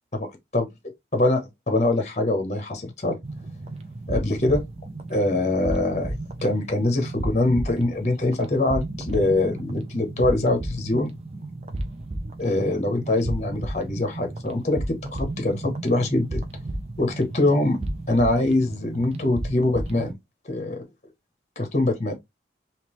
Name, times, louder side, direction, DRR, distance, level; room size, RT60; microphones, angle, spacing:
voice 1, 1.1-3.2 4.1-4.6 5.1-6.1 6.4-11.1 12.4-16.4 17.0-17.8 18.1-20.2 20.5-20.8 21.6-22.1, left 2 dB, 40° left, 0.9 m, -23 dB
sound 1, 3.2-20.1, right 1 dB, 35° right, 0.6 m, -33 dB
3.6 x 2.8 x 3.0 m
head